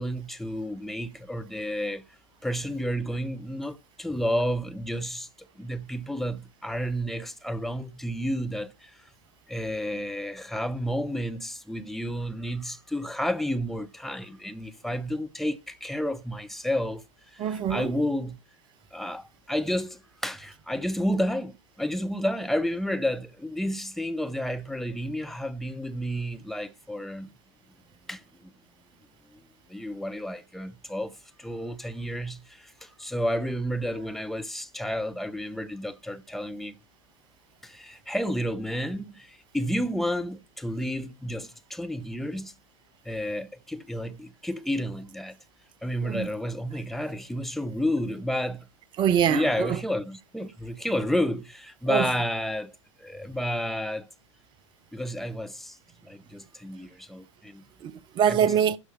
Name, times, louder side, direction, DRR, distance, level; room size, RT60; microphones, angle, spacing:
voice 1, 0.0-2.0 2.4-8.9 9.5-17.0 17.3-18.4 18.9-27.3 28.1-28.5 29.3-29.4 29.7-36.7 37.6-42.5 43.0-45.4 45.8-48.7 49.2-52.7 53.0-54.1 54.9-55.8 56.0-57.6 58.3-58.4, equal, ahead, 0.8 m, -31 dB
voice 2, 17.4-17.9 46.0-46.3 49.0-49.8 51.9-52.1 57.8-58.8, right 9 dB, 30° right, 0.7 m, -24 dB
12.5 x 4.7 x 4.6 m
figure-of-eight pair, 95°, 16 cm